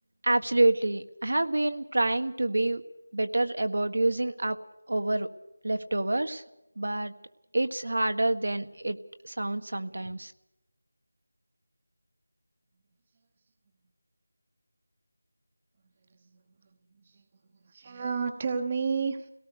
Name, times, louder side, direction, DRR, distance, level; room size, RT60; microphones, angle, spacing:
voice 1, 0.2-2.8 3.1-4.6 4.9-5.3 5.6-6.4 6.8-7.1 7.5-9.0 9.2-10.3, right 2 dB, 75° right, 8 dB, 1.7 m, -27 dB
voice 2, 16.1-16.4 16.9-17.2 17.6-19.3, right 5 dB, 20° right, 8 dB, 1.1 m, -31 dB
26.0 x 18.0 x 6.7 m, 0.87 s
figure-of-eight pair, 175°, 0 cm